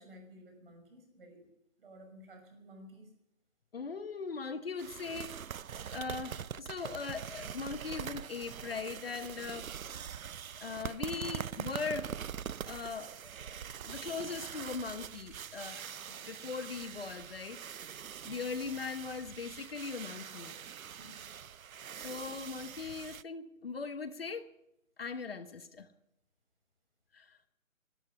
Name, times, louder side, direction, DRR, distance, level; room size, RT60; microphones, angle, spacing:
voice 1, 0.0-1.5 1.8-3.1 21.0-21.2, equal, 40° right, 3 dB, 6.0 m, -54 dB
voice 2, 3.7-5.3 5.9-9.7 10.6-12.1 12.6-15.8 16.1-17.6 18.2-20.5 21.9-24.5 25.0-25.9 27.1-27.4, left 5 dB, 45° left, 11 dB, 1.1 m, -40 dB
sound 1, 4.8-23.2, right 8 dB, 80° right, 0.6 m, -43 dB
17.0 x 12.5 x 6.7 m, 0.84 s
figure-of-eight pair, 155°, 41 cm